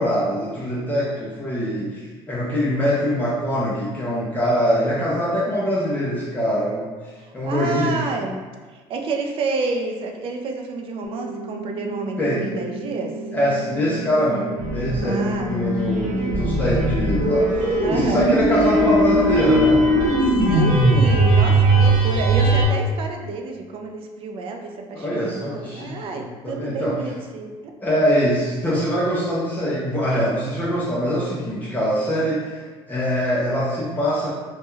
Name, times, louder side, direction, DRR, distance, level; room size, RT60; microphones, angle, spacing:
voice 1, 0.0-6.9 7.3-8.0 12.2-12.5 13.3-19.8 21.5-21.6 24.9-27.0 27.8-32.6 32.9-34.3, equal, 15° left, -8 dB, 0.4 m, -23 dB
voice 2, 7.2-8.4 8.7-13.1 15.0-15.5 17.8-18.3 20.2-27.7, right 3 dB, 50° right, 3 dB, 0.4 m, -29 dB
sound 1, 11.0-21.0, right 2 dB, 85° left, 0.6 m, -34 dB
sound 2, 14.6-22.7, right 1 dB, 90° right, 0.9 m, -19 dB
2.2 x 2.1 x 3.0 m, 1.4 s
cardioid pair, 125°, 12 cm